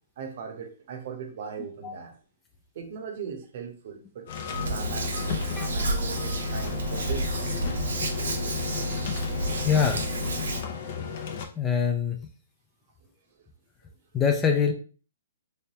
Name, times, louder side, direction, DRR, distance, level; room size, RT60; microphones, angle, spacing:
voice 1, 0.2-2.1 2.7-4.3 4.6-5.2 5.7-7.3, right 6 dB, 50° right, 5 dB, 0.8 m, -38 dB
sound 1, 4.3-11.4, left 8 dB, 50° left, 0.7 m, -34 dB
Hands, 4.5-10.6, right 1 dB, 85° right, 0.9 m, -30 dB
voice 2, 9.6-10.0 11.6-12.2 14.1-14.7, left 7 dB, 15° left, 3 dB, 0.4 m, -24 dB
3.3 x 3.2 x 2.8 m, 0.40 s
hypercardioid pair, 150°, 0 cm